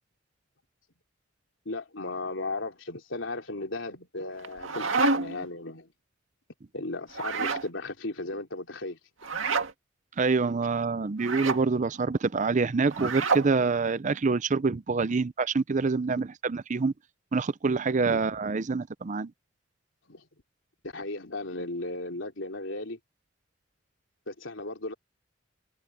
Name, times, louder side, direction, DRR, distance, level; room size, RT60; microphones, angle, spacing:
voice 1, 1.6-5.9 6.7-9.0 18.1-18.3 20.1-20.2 20.8-23.0 24.3-24.9, left 2 dB, 75° left, 3.5 m, -36 dB
sound 1, 4.4-5.5 7.1-7.7 9.2-9.7 11.2-11.6 12.9-13.5, right 4 dB, 85° right, 2.0 m, -28 dB
voice 2, 10.2-16.9 17.3-19.3, right 4 dB, 40° right, 0.5 m, -26 dB
head